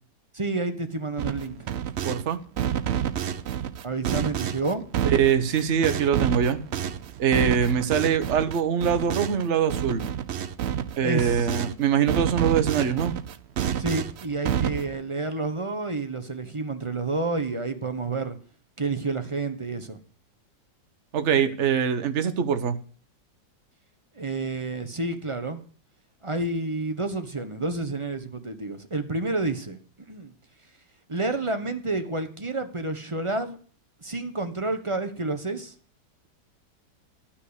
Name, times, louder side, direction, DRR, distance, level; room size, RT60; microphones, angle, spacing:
voice 1, 0.3-1.7 3.8-4.8 11.0-11.6 13.8-18.3 18.8-20.0 24.2-25.6 26.2-30.3 31.1-33.6 34.0-35.7, right 3 dB, 20° right, 8 dB, 0.8 m, -29 dB
sound 1, 1.2-2.2 2.6-11.7 12.1-15.0, right 9 dB, 75° right, 0.6 m, -29 dB
voice 2, 2.0-2.4 5.0-6.6 7.2-10.0 11.0-13.1 21.1-22.8, right 7 dB, 45° right, 9 dB, 1.2 m, -23 dB
13.0 x 5.9 x 8.1 m, 0.43 s
omnidirectional pair, 1.9 m